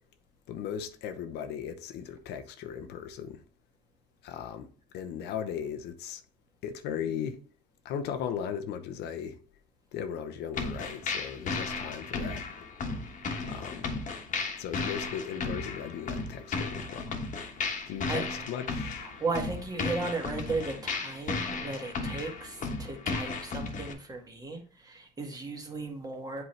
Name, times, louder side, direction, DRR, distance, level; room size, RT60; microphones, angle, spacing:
voice 1, 0.5-3.4 4.2-4.7 4.9-6.2 6.6-7.4 7.8-9.4 9.9-12.5 13.4-13.9 14.6-17.1 17.9-19.1, left 8 dB, 80° left, 0.8 m, -37 dB
sound 1, 10.5-23.9, left 4 dB, 50° left, 1.3 m, -35 dB
voice 2, 17.7-18.3 19.0-26.4, right 3 dB, 20° right, 1.7 m, -36 dB
7.9 x 4.5 x 3.2 m
cardioid pair, 110°, 17 cm